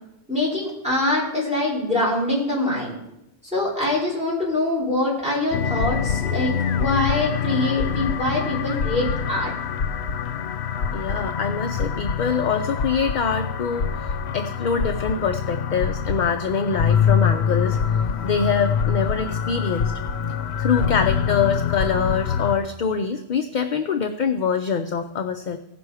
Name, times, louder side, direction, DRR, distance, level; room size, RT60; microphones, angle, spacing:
voice 1, 0.3-2.9 3.5-9.5, left 2 dB, 5° right, -5 dB, 3.9 m, -24 dB
sound 1, 5.5-22.6, left 7 dB, 80° left, 0.9 m, -25 dB
voice 2, 10.9-20.0 20.6-25.6, left 6 dB, 55° left, 7 dB, 0.6 m, -24 dB
16.0 x 6.0 x 4.8 m, 0.89 s
omnidirectional pair, 1.1 m